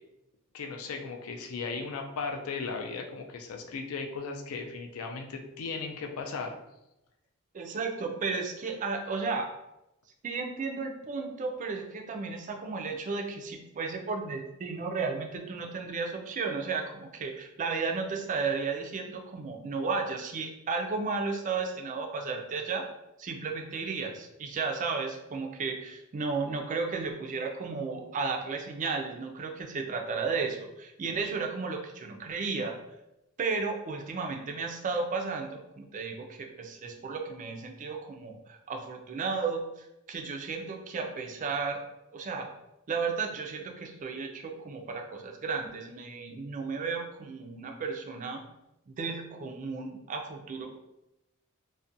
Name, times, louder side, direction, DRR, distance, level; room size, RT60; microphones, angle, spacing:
voice 1, 0.5-6.6, left 4 dB, 70° left, 3 dB, 0.4 m, -36 dB
voice 2, 7.5-9.5 10.2-22.9 23.2-32.8 33.4-41.8 42.1-42.5 42.9-48.4 48.9-50.8, right 4 dB, 35° right, 3 dB, 0.3 m, -34 dB
2.4 x 2.1 x 2.6 m, 0.89 s
head